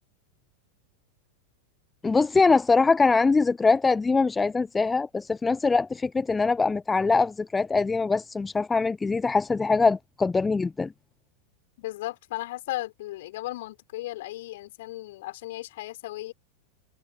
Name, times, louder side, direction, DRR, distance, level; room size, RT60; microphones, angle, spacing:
voice 1, 2.0-10.9, left 4 dB, 10° left, 0.9 m, -23 dB
voice 2, 11.8-16.3, left 16 dB, 55° left, 5.9 m, -35 dB
open air
figure-of-eight pair, 90°, 0 cm